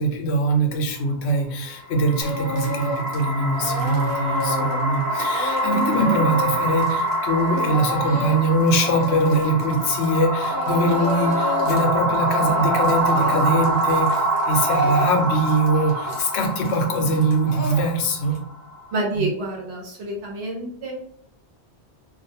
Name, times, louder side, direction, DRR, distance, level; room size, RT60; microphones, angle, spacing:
voice 1, 0.0-18.4 19.1-19.3, right 1 dB, 75° left, 4 dB, 0.8 m, -22 dB
sound 1, 1.8-18.9, right 1 dB, 90° right, 1.1 m, -25 dB
Speech / Crying sobbing, 2.2-3.2 3.5-10.2 10.4-11.9 12.1-18.4, left 1 dB, 30° left, 0.6 m, -30 dB
voice 2, 18.9-20.9, right 2 dB, 65° right, 0 dB, 1.0 m, -28 dB
2.4 x 2.2 x 2.7 m, 0.63 s
omnidirectional pair, 1.2 m